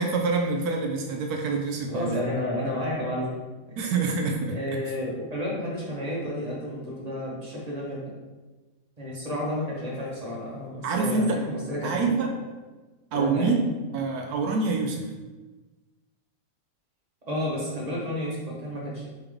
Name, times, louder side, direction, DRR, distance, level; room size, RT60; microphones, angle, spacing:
voice 1, 0.0-2.1 3.8-4.6 10.8-11.4 11.8-12.3 13.1-13.6 13.9-15.1, right 4 dB, 70° right, 2 dB, 1.0 m, -26 dB
voice 2, 1.9-3.3 4.5-8.0 9.0-11.9 13.1-13.6 17.3-19.1, left 1 dB, 30° right, -5 dB, 0.9 m, -31 dB
4.2 x 3.5 x 3.5 m, 1.2 s
omnidirectional pair, 1.8 m